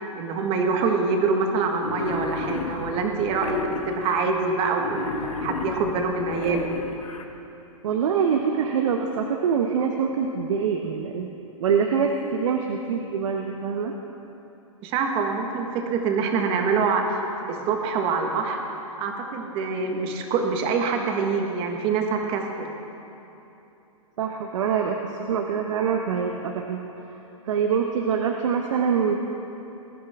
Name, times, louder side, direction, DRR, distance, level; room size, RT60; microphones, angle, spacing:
voice 1, 0.0-5.1 5.4-6.7 14.8-18.6 19.0-22.7, right 4 dB, 30° right, 3 dB, 1.6 m, -25 dB
Wild animals, 1.8-4.2 4.8-7.2, left 4 dB, 85° left, 1.3 m, -33 dB
voice 2, 7.8-11.3 11.6-13.9 24.2-26.8 27.1-27.2 27.4-29.2, right 6 dB, 65° right, 3 dB, 1.0 m, -24 dB
20.5 x 10.5 x 3.7 m, 2.9 s
hypercardioid pair, 140°, 18 cm